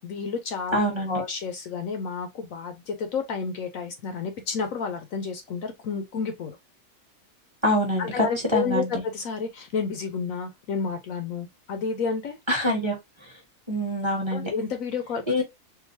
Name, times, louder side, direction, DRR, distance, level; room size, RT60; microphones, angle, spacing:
voice 1, 0.0-0.8 1.1-6.6 8.0-12.4 14.3-15.4, left 5 dB, 65° left, 1.0 m, -30 dB
voice 2, 0.7-1.2 7.6-8.1 8.5-8.9 12.5-13.0 13.7-14.5 15.3-15.4, equal, 20° right, 1.1 m, -24 dB
3.8 x 2.5 x 2.6 m
omnidirectional pair, 1.6 m